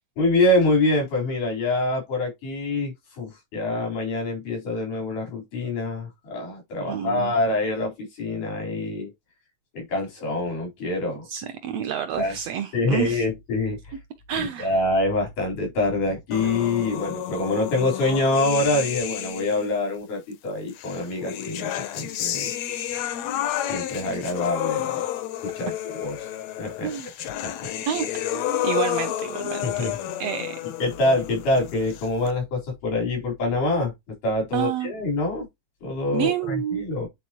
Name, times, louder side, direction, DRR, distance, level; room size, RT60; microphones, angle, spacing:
voice 1, 0.2-9.1 9.7-11.3 12.1-12.4 12.7-14.0 14.4-22.5 23.6-25.0 25.4-26.2 26.6-26.9 27.4-27.7 29.6-30.0 30.8-35.5 35.8-37.1, left 2 dB, 85° left, 5.3 m, -25 dB
voice 2, 6.8-7.3 11.3-13.2 14.3-14.7 26.8-27.1 27.9-29.8 30.2-30.6 34.5-34.9 36.1-36.8, right 9 dB, 80° right, 1.5 m, -29 dB
sound 1, 16.3-19.8 20.8-32.3, left 12 dB, 70° left, 1.8 m, -30 dB
9.3 x 4.2 x 2.9 m
omnidirectional pair, 3.5 m